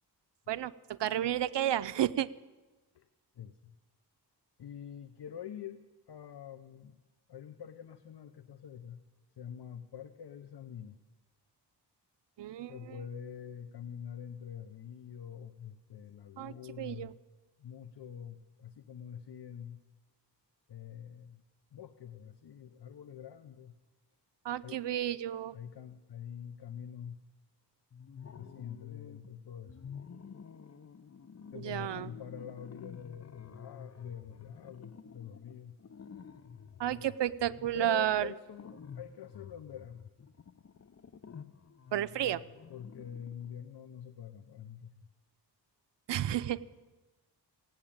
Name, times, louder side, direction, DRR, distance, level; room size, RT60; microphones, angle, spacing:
voice 1, 0.5-2.3 12.4-13.0 16.4-17.1 24.4-25.5 31.5-32.1 36.8-38.3 41.9-42.4 46.1-46.8, right 12 dB, 85° right, 15 dB, 0.6 m, -32 dB
voice 2, 3.3-3.8 4.6-7.0 7.3-9.0 9.4-11.0 12.7-17.2 17.6-19.8 20.7-21.4 21.7-23.7 24.6-24.8 25.5-27.2 28.4-29.9 31.5-35.7 37.7-40.1 42.7-44.9, left 8 dB, 70° left, 10 dB, 0.8 m, -45 dB
sound 1, 27.9-29.3 29.6-43.5, left 6 dB, 40° left, 0.7 m, -51 dB
16.5 x 8.8 x 8.7 m, 1.2 s
cardioid pair, 75°, 42 cm